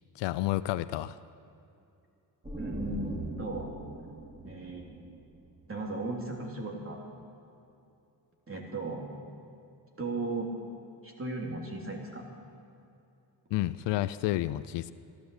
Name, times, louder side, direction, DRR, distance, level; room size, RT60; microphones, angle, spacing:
voice 1, 0.2-1.2 13.5-14.9, left 15 dB, 90° left, 15 dB, 0.5 m, -30 dB
sound 1, 2.4-6.1, right 2 dB, 15° right, 3.1 m, -40 dB
voice 2, 2.6-3.7 4.4-5.0 5.7-7.0 8.5-9.1 10.0-10.5 11.0-12.2, right 2 dB, 30° right, -1 dB, 3.4 m, -36 dB
14.5 x 12.0 x 7.9 m, 2.7 s
cardioid pair, 90°, 41 cm